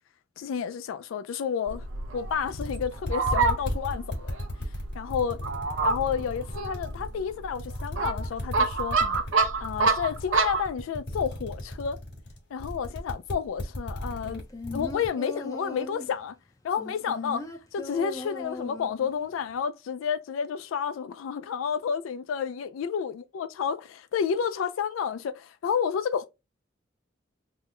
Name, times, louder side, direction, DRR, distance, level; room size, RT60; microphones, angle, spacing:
voice 1, 0.4-1.9 2.1-4.4 4.9-5.4 5.8-9.2 9.6-12.0 12.5-14.4 14.7-16.3 16.6-17.4 17.7-26.3, left 7 dB, 85° left, 0.3 m, -30 dB
Fowl, 1.7-10.7, right 3 dB, 80° right, 0.7 m, -28 dB
sound 1, 2.2-2.3 2.5-7.1 7.5-15.1, left 1 dB, 55° left, 1.8 m, -35 dB
sound 2, 14.2-16.2 16.8-19.2 19.5-19.6, left 2 dB, 15° left, 0.5 m, -38 dB
3.7 x 2.1 x 3.7 m
head